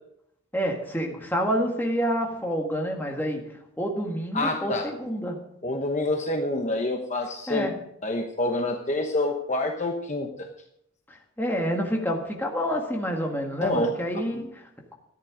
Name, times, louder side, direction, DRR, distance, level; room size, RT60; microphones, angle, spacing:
voice 1, 0.5-3.4 3.8-5.4 7.5-7.7 11.1-14.9, equal, 10° left, 0 dB, 1.8 m, -28 dB
voice 2, 4.3-4.9 5.6-7.7 8.0-10.5 13.6-13.9 14.3-14.4, left 2 dB, 35° left, 3 dB, 1.0 m, -27 dB
14.0 x 10.5 x 5.1 m, 0.75 s
head